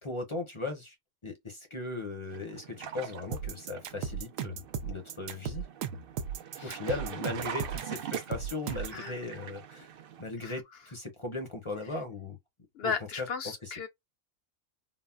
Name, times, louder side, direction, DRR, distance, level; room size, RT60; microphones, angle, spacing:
voice 1, 0.0-1.0 1.2-5.6 5.9-6.0 6.6-9.9 10.2-12.4 12.8-13.3 13.6-13.7, left 3 dB, 25° left, 0.8 m, -38 dB
sound 1, 2.3-10.2, right 9 dB, 55° right, 0.6 m, -43 dB
sound 2, 3.3-9.0, right 7 dB, 75° right, 1.0 m, -36 dB
voice 2, 12.7-13.9, left 5 dB, 55° left, 0.8 m, -35 dB
3.9 x 2.0 x 2.3 m
omnidirectional pair, 1.4 m